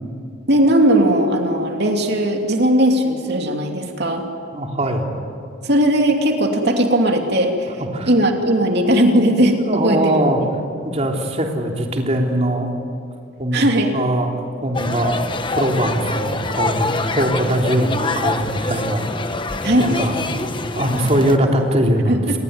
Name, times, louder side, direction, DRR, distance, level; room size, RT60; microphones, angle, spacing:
voice 1, 0.5-4.3 5.6-7.7 8.0-10.1 13.5-13.9 19.6-20.0 22.1-22.4, right 1 dB, 55° right, 3 dB, 2.9 m, -17 dB
voice 2, 4.5-5.1 7.9-8.1 9.6-10.4 10.8-12.7 13.4-14.3 14.6-15.2 15.5-19.1 19.8-20.5 20.7-22.4, right 1 dB, 35° right, 1 dB, 3.3 m, -21 dB
sound 1, 14.7-21.4, left 3 dB, 25° left, 1.2 m, -25 dB
28.0 x 20.5 x 9.6 m, 2.4 s
head